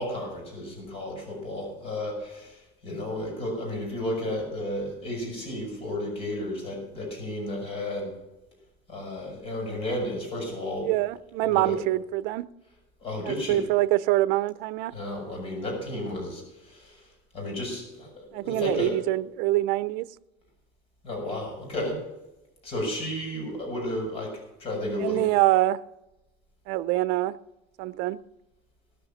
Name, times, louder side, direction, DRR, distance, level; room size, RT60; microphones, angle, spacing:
voice 1, 0.0-8.2 8.9-10.9 11.4-11.8 13.0-13.6 14.9-17.1 17.3-19.0 21.0-22.0 22.6-25.3, left 1 dB, 40° left, 0 dB, 5.9 m, -33 dB
voice 2, 10.8-12.5 13.2-14.9 18.3-20.1 25.0-25.8 26.7-27.4 27.8-28.2, right 17 dB, 70° right, 16 dB, 0.6 m, -25 dB
17.5 x 7.0 x 7.2 m, 0.95 s
cardioid pair, 155°, 16 cm